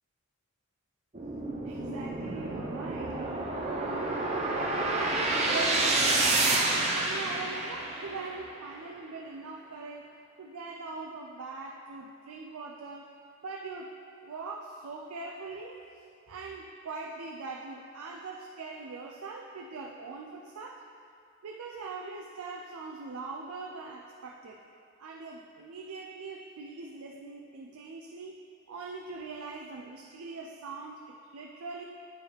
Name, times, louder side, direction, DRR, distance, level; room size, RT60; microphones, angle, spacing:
sound 1, 1.1-8.4, right 2 dB, 30° right, 0.6 m, -29 dB
voice 1, 1.6-3.4 3.9-10.1 10.4-13.1 13.4-13.9 14.2-20.8 21.4-24.6 25.0-28.4 28.7-31.8, right 4 dB, 75° right, 0 dB, 0.5 m, -41 dB
9.1 x 4.7 x 3.4 m, 2.3 s
head